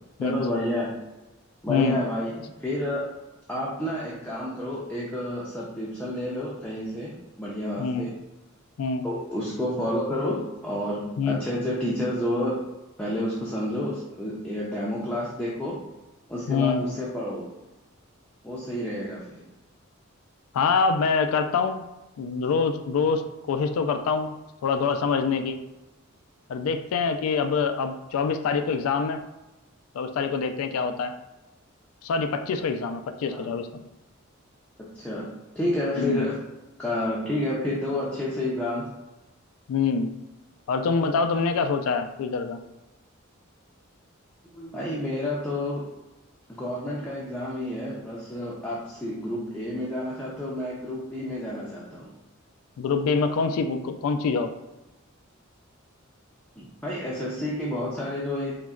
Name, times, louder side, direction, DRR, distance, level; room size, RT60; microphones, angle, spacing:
voice 1, 0.2-1.1 1.6-3.1 3.5-8.1 9.0-12.6 13.0-15.8 16.3-17.5 18.4-19.4 33.3-33.5 34.8-36.4 36.8-38.9 44.5-45.9 46.6-52.1 56.6-58.6, left 1 dB, 5° left, -6 dB, 0.4 m, -30 dB
voice 2, 7.8-8.1 8.8-9.1 11.2-11.4 16.5-16.8 20.5-21.8 22.2-24.3 24.6-25.6 26.5-29.2 29.9-31.1 32.0-33.8 36.0-36.3 39.7-40.1 40.7-42.6 52.8-54.5, left 5 dB, 85° left, 9 dB, 0.3 m, -25 dB
3.8 x 2.1 x 2.3 m, 1.0 s
head